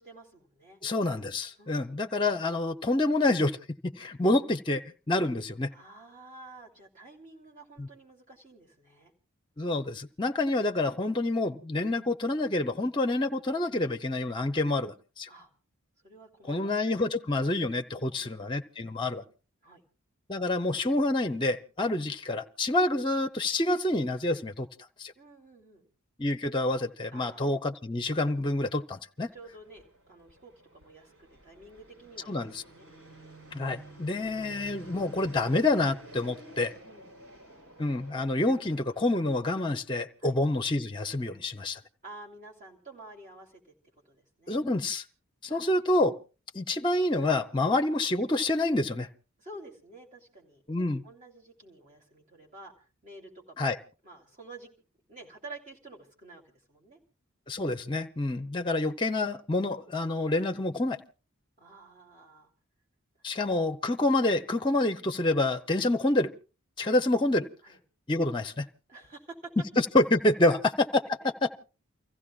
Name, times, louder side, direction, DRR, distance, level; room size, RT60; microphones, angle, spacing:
voice 1, 0.0-0.8 1.6-2.0 5.7-9.1 15.3-15.5 16.0-16.9 17.9-18.4 19.6-19.8 25.1-25.8 27.1-27.4 29.3-32.9 36.8-37.1 40.2-40.4 42.0-43.7 44.0-44.6 45.5-45.8 47.6-47.7 49.4-50.6 51.0-53.8 54.0-54.7 55.1-57.0 61.6-62.5 66.8-67.0 67.6-67.8 68.9-69.5 71.2-71.5, right 2 dB, 35° right, 3.1 m, -50 dB
voice 2, 0.8-3.6 3.8-4.8 5.1-5.7 7.8-7.9 9.6-15.3 16.5-19.2 20.3-24.7 25.0-25.1 26.2-29.3 32.3-32.6 33.5-36.7 37.8-41.8 44.5-45.0 45.4-46.1 46.5-49.1 50.7-51.0 53.6-53.8 57.5-61.0 63.2-66.3 66.8-67.5 68.1-68.7 69.8-71.0 71.4-71.5, left 2 dB, 20° left, 0.7 m, -27 dB
Fixed-wing aircraft airplane, 29.2-39.4, right 1 dB, 90° right, 6.2 m, -51 dB
29.5 x 15.0 x 2.4 m
head